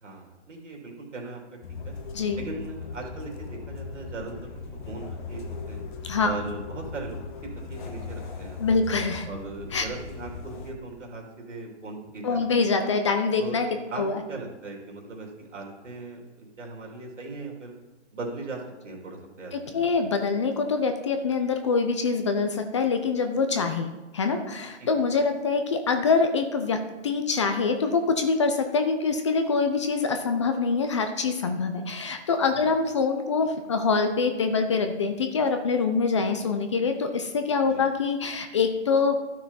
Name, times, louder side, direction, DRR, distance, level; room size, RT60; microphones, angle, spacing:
voice 1, 0.0-1.6 1.8-1.9 2.3-5.8 6.2-8.8 9.3-12.6 13.4-13.6 13.9-14.0 14.3-17.7 18.1-19.8 24.8-24.9 32.5-32.7 37.7-37.8, right 3 dB, 80° right, 0 dB, 3.1 m, -39 dB
sound 1, 1.6-10.7, left 4 dB, 40° left, 1.3 m, -38 dB
voice 2, 8.6-9.3 9.7-9.8 12.2-13.7 14.0-14.2 19.5-39.3, left 4 dB, 25° left, 7 dB, 0.5 m, -25 dB
12.5 x 6.1 x 4.1 m, 1.1 s
hypercardioid pair, 155°, 36 cm